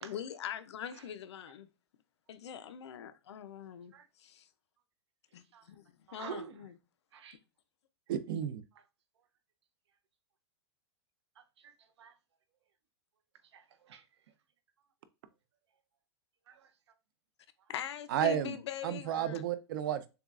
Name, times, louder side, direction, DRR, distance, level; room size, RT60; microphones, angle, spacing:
voice 1, 0.0-1.7 2.3-3.9 4.2-4.4 5.3-6.7 17.7-19.4, left 10 dB, 90° left, 0.6 m, -42 dB
voice 2, 6.1-6.7 7.1-7.4 11.4-12.2 13.5-14.1 16.5-16.7, right 7 dB, 85° right, 0.7 m, -48 dB
voice 3, 8.1-8.6 18.1-18.6 18.8-20.1, right 10 dB, 50° right, 0.5 m, -32 dB
6.8 x 2.3 x 2.4 m
supercardioid pair, 170°, 14 cm